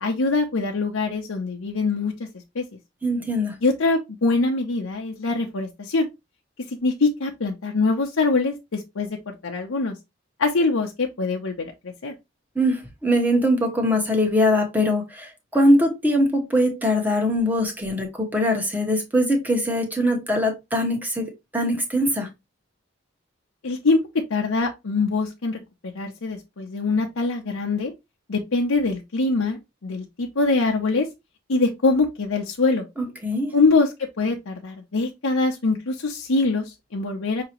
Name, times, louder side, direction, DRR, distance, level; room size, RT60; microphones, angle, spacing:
voice 1, 0.0-2.3 2.5-2.6 3.6-6.1 6.7-10.0 10.4-12.1 23.6-24.0 24.3-27.9 28.3-31.1 31.5-32.8 33.5-37.4, left 3 dB, 85° left, 0.7 m, -23 dB
voice 2, 3.0-3.5 12.5-22.3 33.0-33.5, equal, 10° right, 1.0 m, -22 dB
6.0 x 2.8 x 3.0 m
head